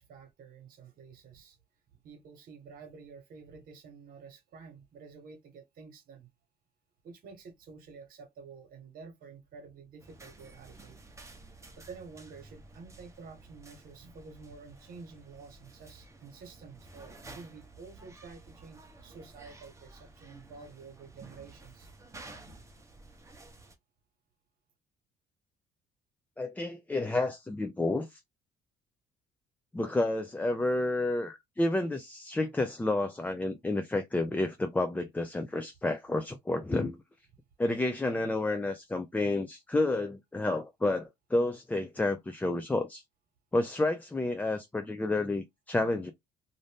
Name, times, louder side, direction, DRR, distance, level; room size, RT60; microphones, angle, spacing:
voice 1, 0.0-1.6 1.9-6.3 7.0-11.0 11.8-21.9, right 5 dB, 60° right, 1.2 m, -50 dB
sound 1, 10.0-23.8, right 2 dB, 15° right, 0.8 m, -52 dB
voice 2, 26.4-28.2 29.7-37.0 37.6-43.0 43.5-46.1, left 2 dB, 10° left, 0.4 m, -30 dB
2.6 x 2.5 x 3.4 m
cardioid pair, 110°, 17 cm